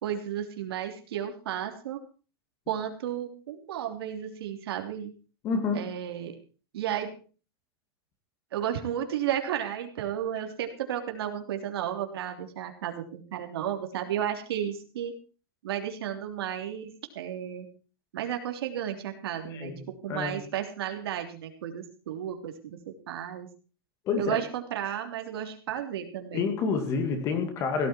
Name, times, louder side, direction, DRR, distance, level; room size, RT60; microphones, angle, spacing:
voice 1, 0.0-2.0 2.7-5.1 5.7-6.3 6.7-7.1 8.5-15.1 15.6-17.7 18.1-23.5 24.2-26.5, right 10 dB, 90° right, 5 dB, 3.3 m, -33 dB
voice 2, 5.4-5.9 19.5-20.4 24.1-24.4 26.3-27.9, left 5 dB, 25° left, 7 dB, 2.4 m, -29 dB
17.0 x 13.0 x 4.5 m, 0.37 s
supercardioid pair, 180°, 13 cm